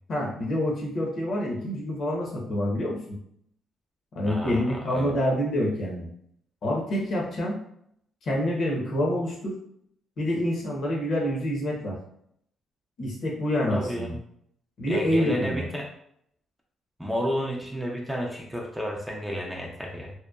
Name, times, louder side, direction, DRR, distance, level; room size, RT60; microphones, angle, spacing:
voice 1, 0.1-3.2 4.1-6.1 6.6-7.6 8.2-9.6 10.2-12.0 13.0-14.1 14.8-15.7, equal, 55° left, -2 dB, 0.9 m, -27 dB
voice 2, 4.2-5.1 13.7-14.2 14.9-15.9 17.0-20.1, equal, 5° right, -1 dB, 0.5 m, -31 dB
2.9 x 2.1 x 2.3 m, 0.70 s
cardioid pair, 90°, 0 cm